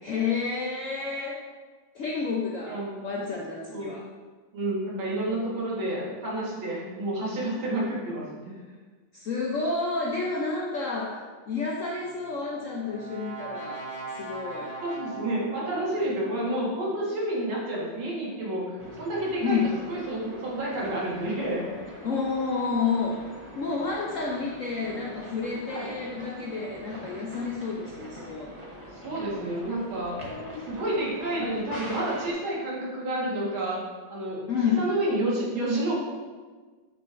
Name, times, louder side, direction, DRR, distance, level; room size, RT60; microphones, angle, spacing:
voice 1, 0.0-1.4 1.9-4.0 9.1-13.9 14.1-14.7 19.4-19.7 22.0-23.3 23.6-28.5 34.5-34.9, left 4 dB, 90° left, -2 dB, 0.6 m, -30 dB
voice 2, 4.5-8.3 14.8-19.6 19.9-21.6 25.7-25.9 29.0-30.2 30.7-33.8 34.1-34.4 34.8-36.0, right 1 dB, 75° right, -5 dB, 2.3 m, -29 dB
Brass instrument, 12.0-16.2, right 3 dB, 35° left, 1.4 m, -40 dB
sound 1, 18.8-32.3, equal, 25° right, 0.6 m, -42 dB
6.9 x 6.6 x 2.5 m, 1.4 s
omnidirectional pair, 2.2 m